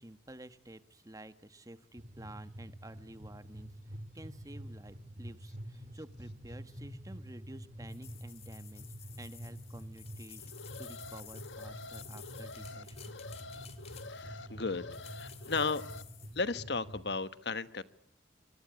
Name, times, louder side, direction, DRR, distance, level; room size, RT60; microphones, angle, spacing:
voice 1, 0.0-13.2, right 1 dB, 20° right, 11 dB, 1.4 m, -51 dB
sound 1, 2.0-17.1, equal, 40° right, 3.7 m, -48 dB
sound 2, 7.9-14.4 14.9-16.4, left 10 dB, 35° left, 2.4 m, -54 dB
Alarm, 10.4-16.0, left 3 dB, 90° left, 1.4 m, -48 dB
voice 2, 14.1-15.8 16.3-17.8, left 4 dB, 65° left, 14 dB, 1.2 m, -35 dB
25.5 x 24.5 x 9.5 m, 0.66 s
head